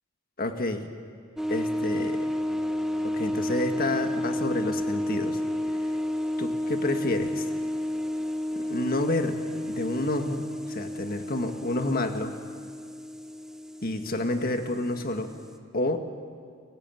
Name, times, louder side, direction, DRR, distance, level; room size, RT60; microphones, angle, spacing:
voice 1, 0.4-0.8 1.5-2.3 3.0-5.4 6.4-7.5 8.6-9.4 9.7-12.3 13.8-15.3 15.7-16.0, left 2 dB, 50° left, 6 dB, 1.8 m, -29 dB
sound 1, 1.4-15.6, left 1 dB, 5° right, 1.2 m, -31 dB
29.5 x 15.5 x 9.2 m, 2.1 s
head